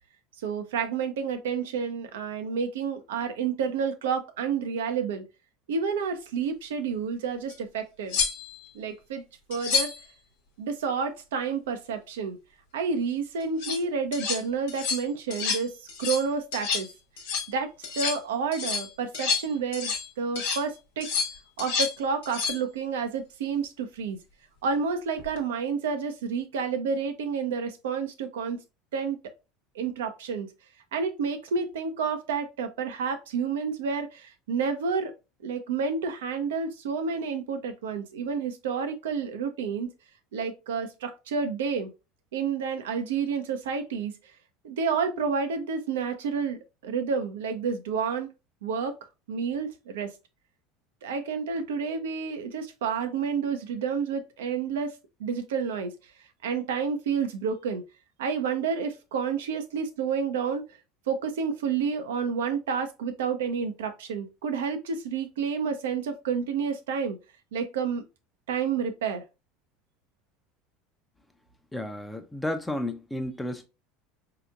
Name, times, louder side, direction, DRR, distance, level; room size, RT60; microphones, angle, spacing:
voice 1, 0.4-5.2 5.7-8.2 8.7-9.2 9.5-9.9 10.6-12.4 12.7-15.7 16.0-16.9 17.5-17.7 18.0-21.1 21.6-24.2 24.6-28.6 28.9-29.2 29.8-30.5 30.9-35.1 35.4-39.9 40.3-41.9 42.3-44.1 44.6-48.3 48.6-49.0 49.3-50.1 51.0-54.9 55.2-55.9 56.4-57.8 58.2-60.6 61.1-67.2 67.5-68.0 68.5-69.2, right 6 dB, 70° right, 0.6 m, -29 dB
sound 1, 7.5-7.6 8.1-8.7 9.5-10.0 13.4-13.8 14.1-14.4 14.7-15.0 15.3-15.6 15.9-16.3 16.5-16.9 17.2-17.5 17.8-18.2 18.5-20.1 20.4-20.6 21.0-22.0 22.2-22.6 25.2-25.4, left 5 dB, 65° left, 1.0 m, -29 dB
voice 2, 71.7-73.7, left 1 dB, 10° left, 0.7 m, -32 dB
4.9 x 2.9 x 2.4 m
figure-of-eight pair, 70°, 0 cm